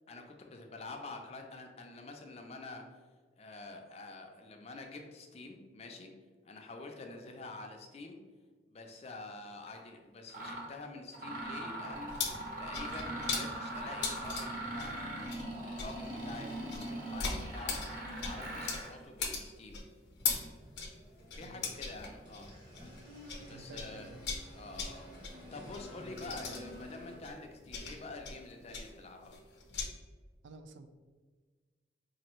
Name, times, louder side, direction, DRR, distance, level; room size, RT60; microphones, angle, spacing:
voice 1, 0.1-2.8 3.4-6.1 6.4-8.2 8.7-12.2 12.6-15.0 15.6-17.8 18.2-19.8 21.4-22.5 23.4-24.1 24.5-29.3, left 3 dB, 35° left, 3 dB, 0.4 m, -47 dB
Mechanisms, 9.7-9.8 10.3-10.7 11.1-18.9, right 1 dB, 50° right, 0.7 m, -41 dB
sound 1, 11.9-23.5 23.7-29.9, left 5 dB, 85° left, 0.6 m, -40 dB
sound 2, 20.2-27.2, left 1 dB, 25° right, 0.9 m, -52 dB
voice 2, 23.5-24.4 30.4-30.9, right 3 dB, 90° right, 9 dB, 0.3 m, -52 dB
4.0 x 2.6 x 3.0 m, 1.5 s
head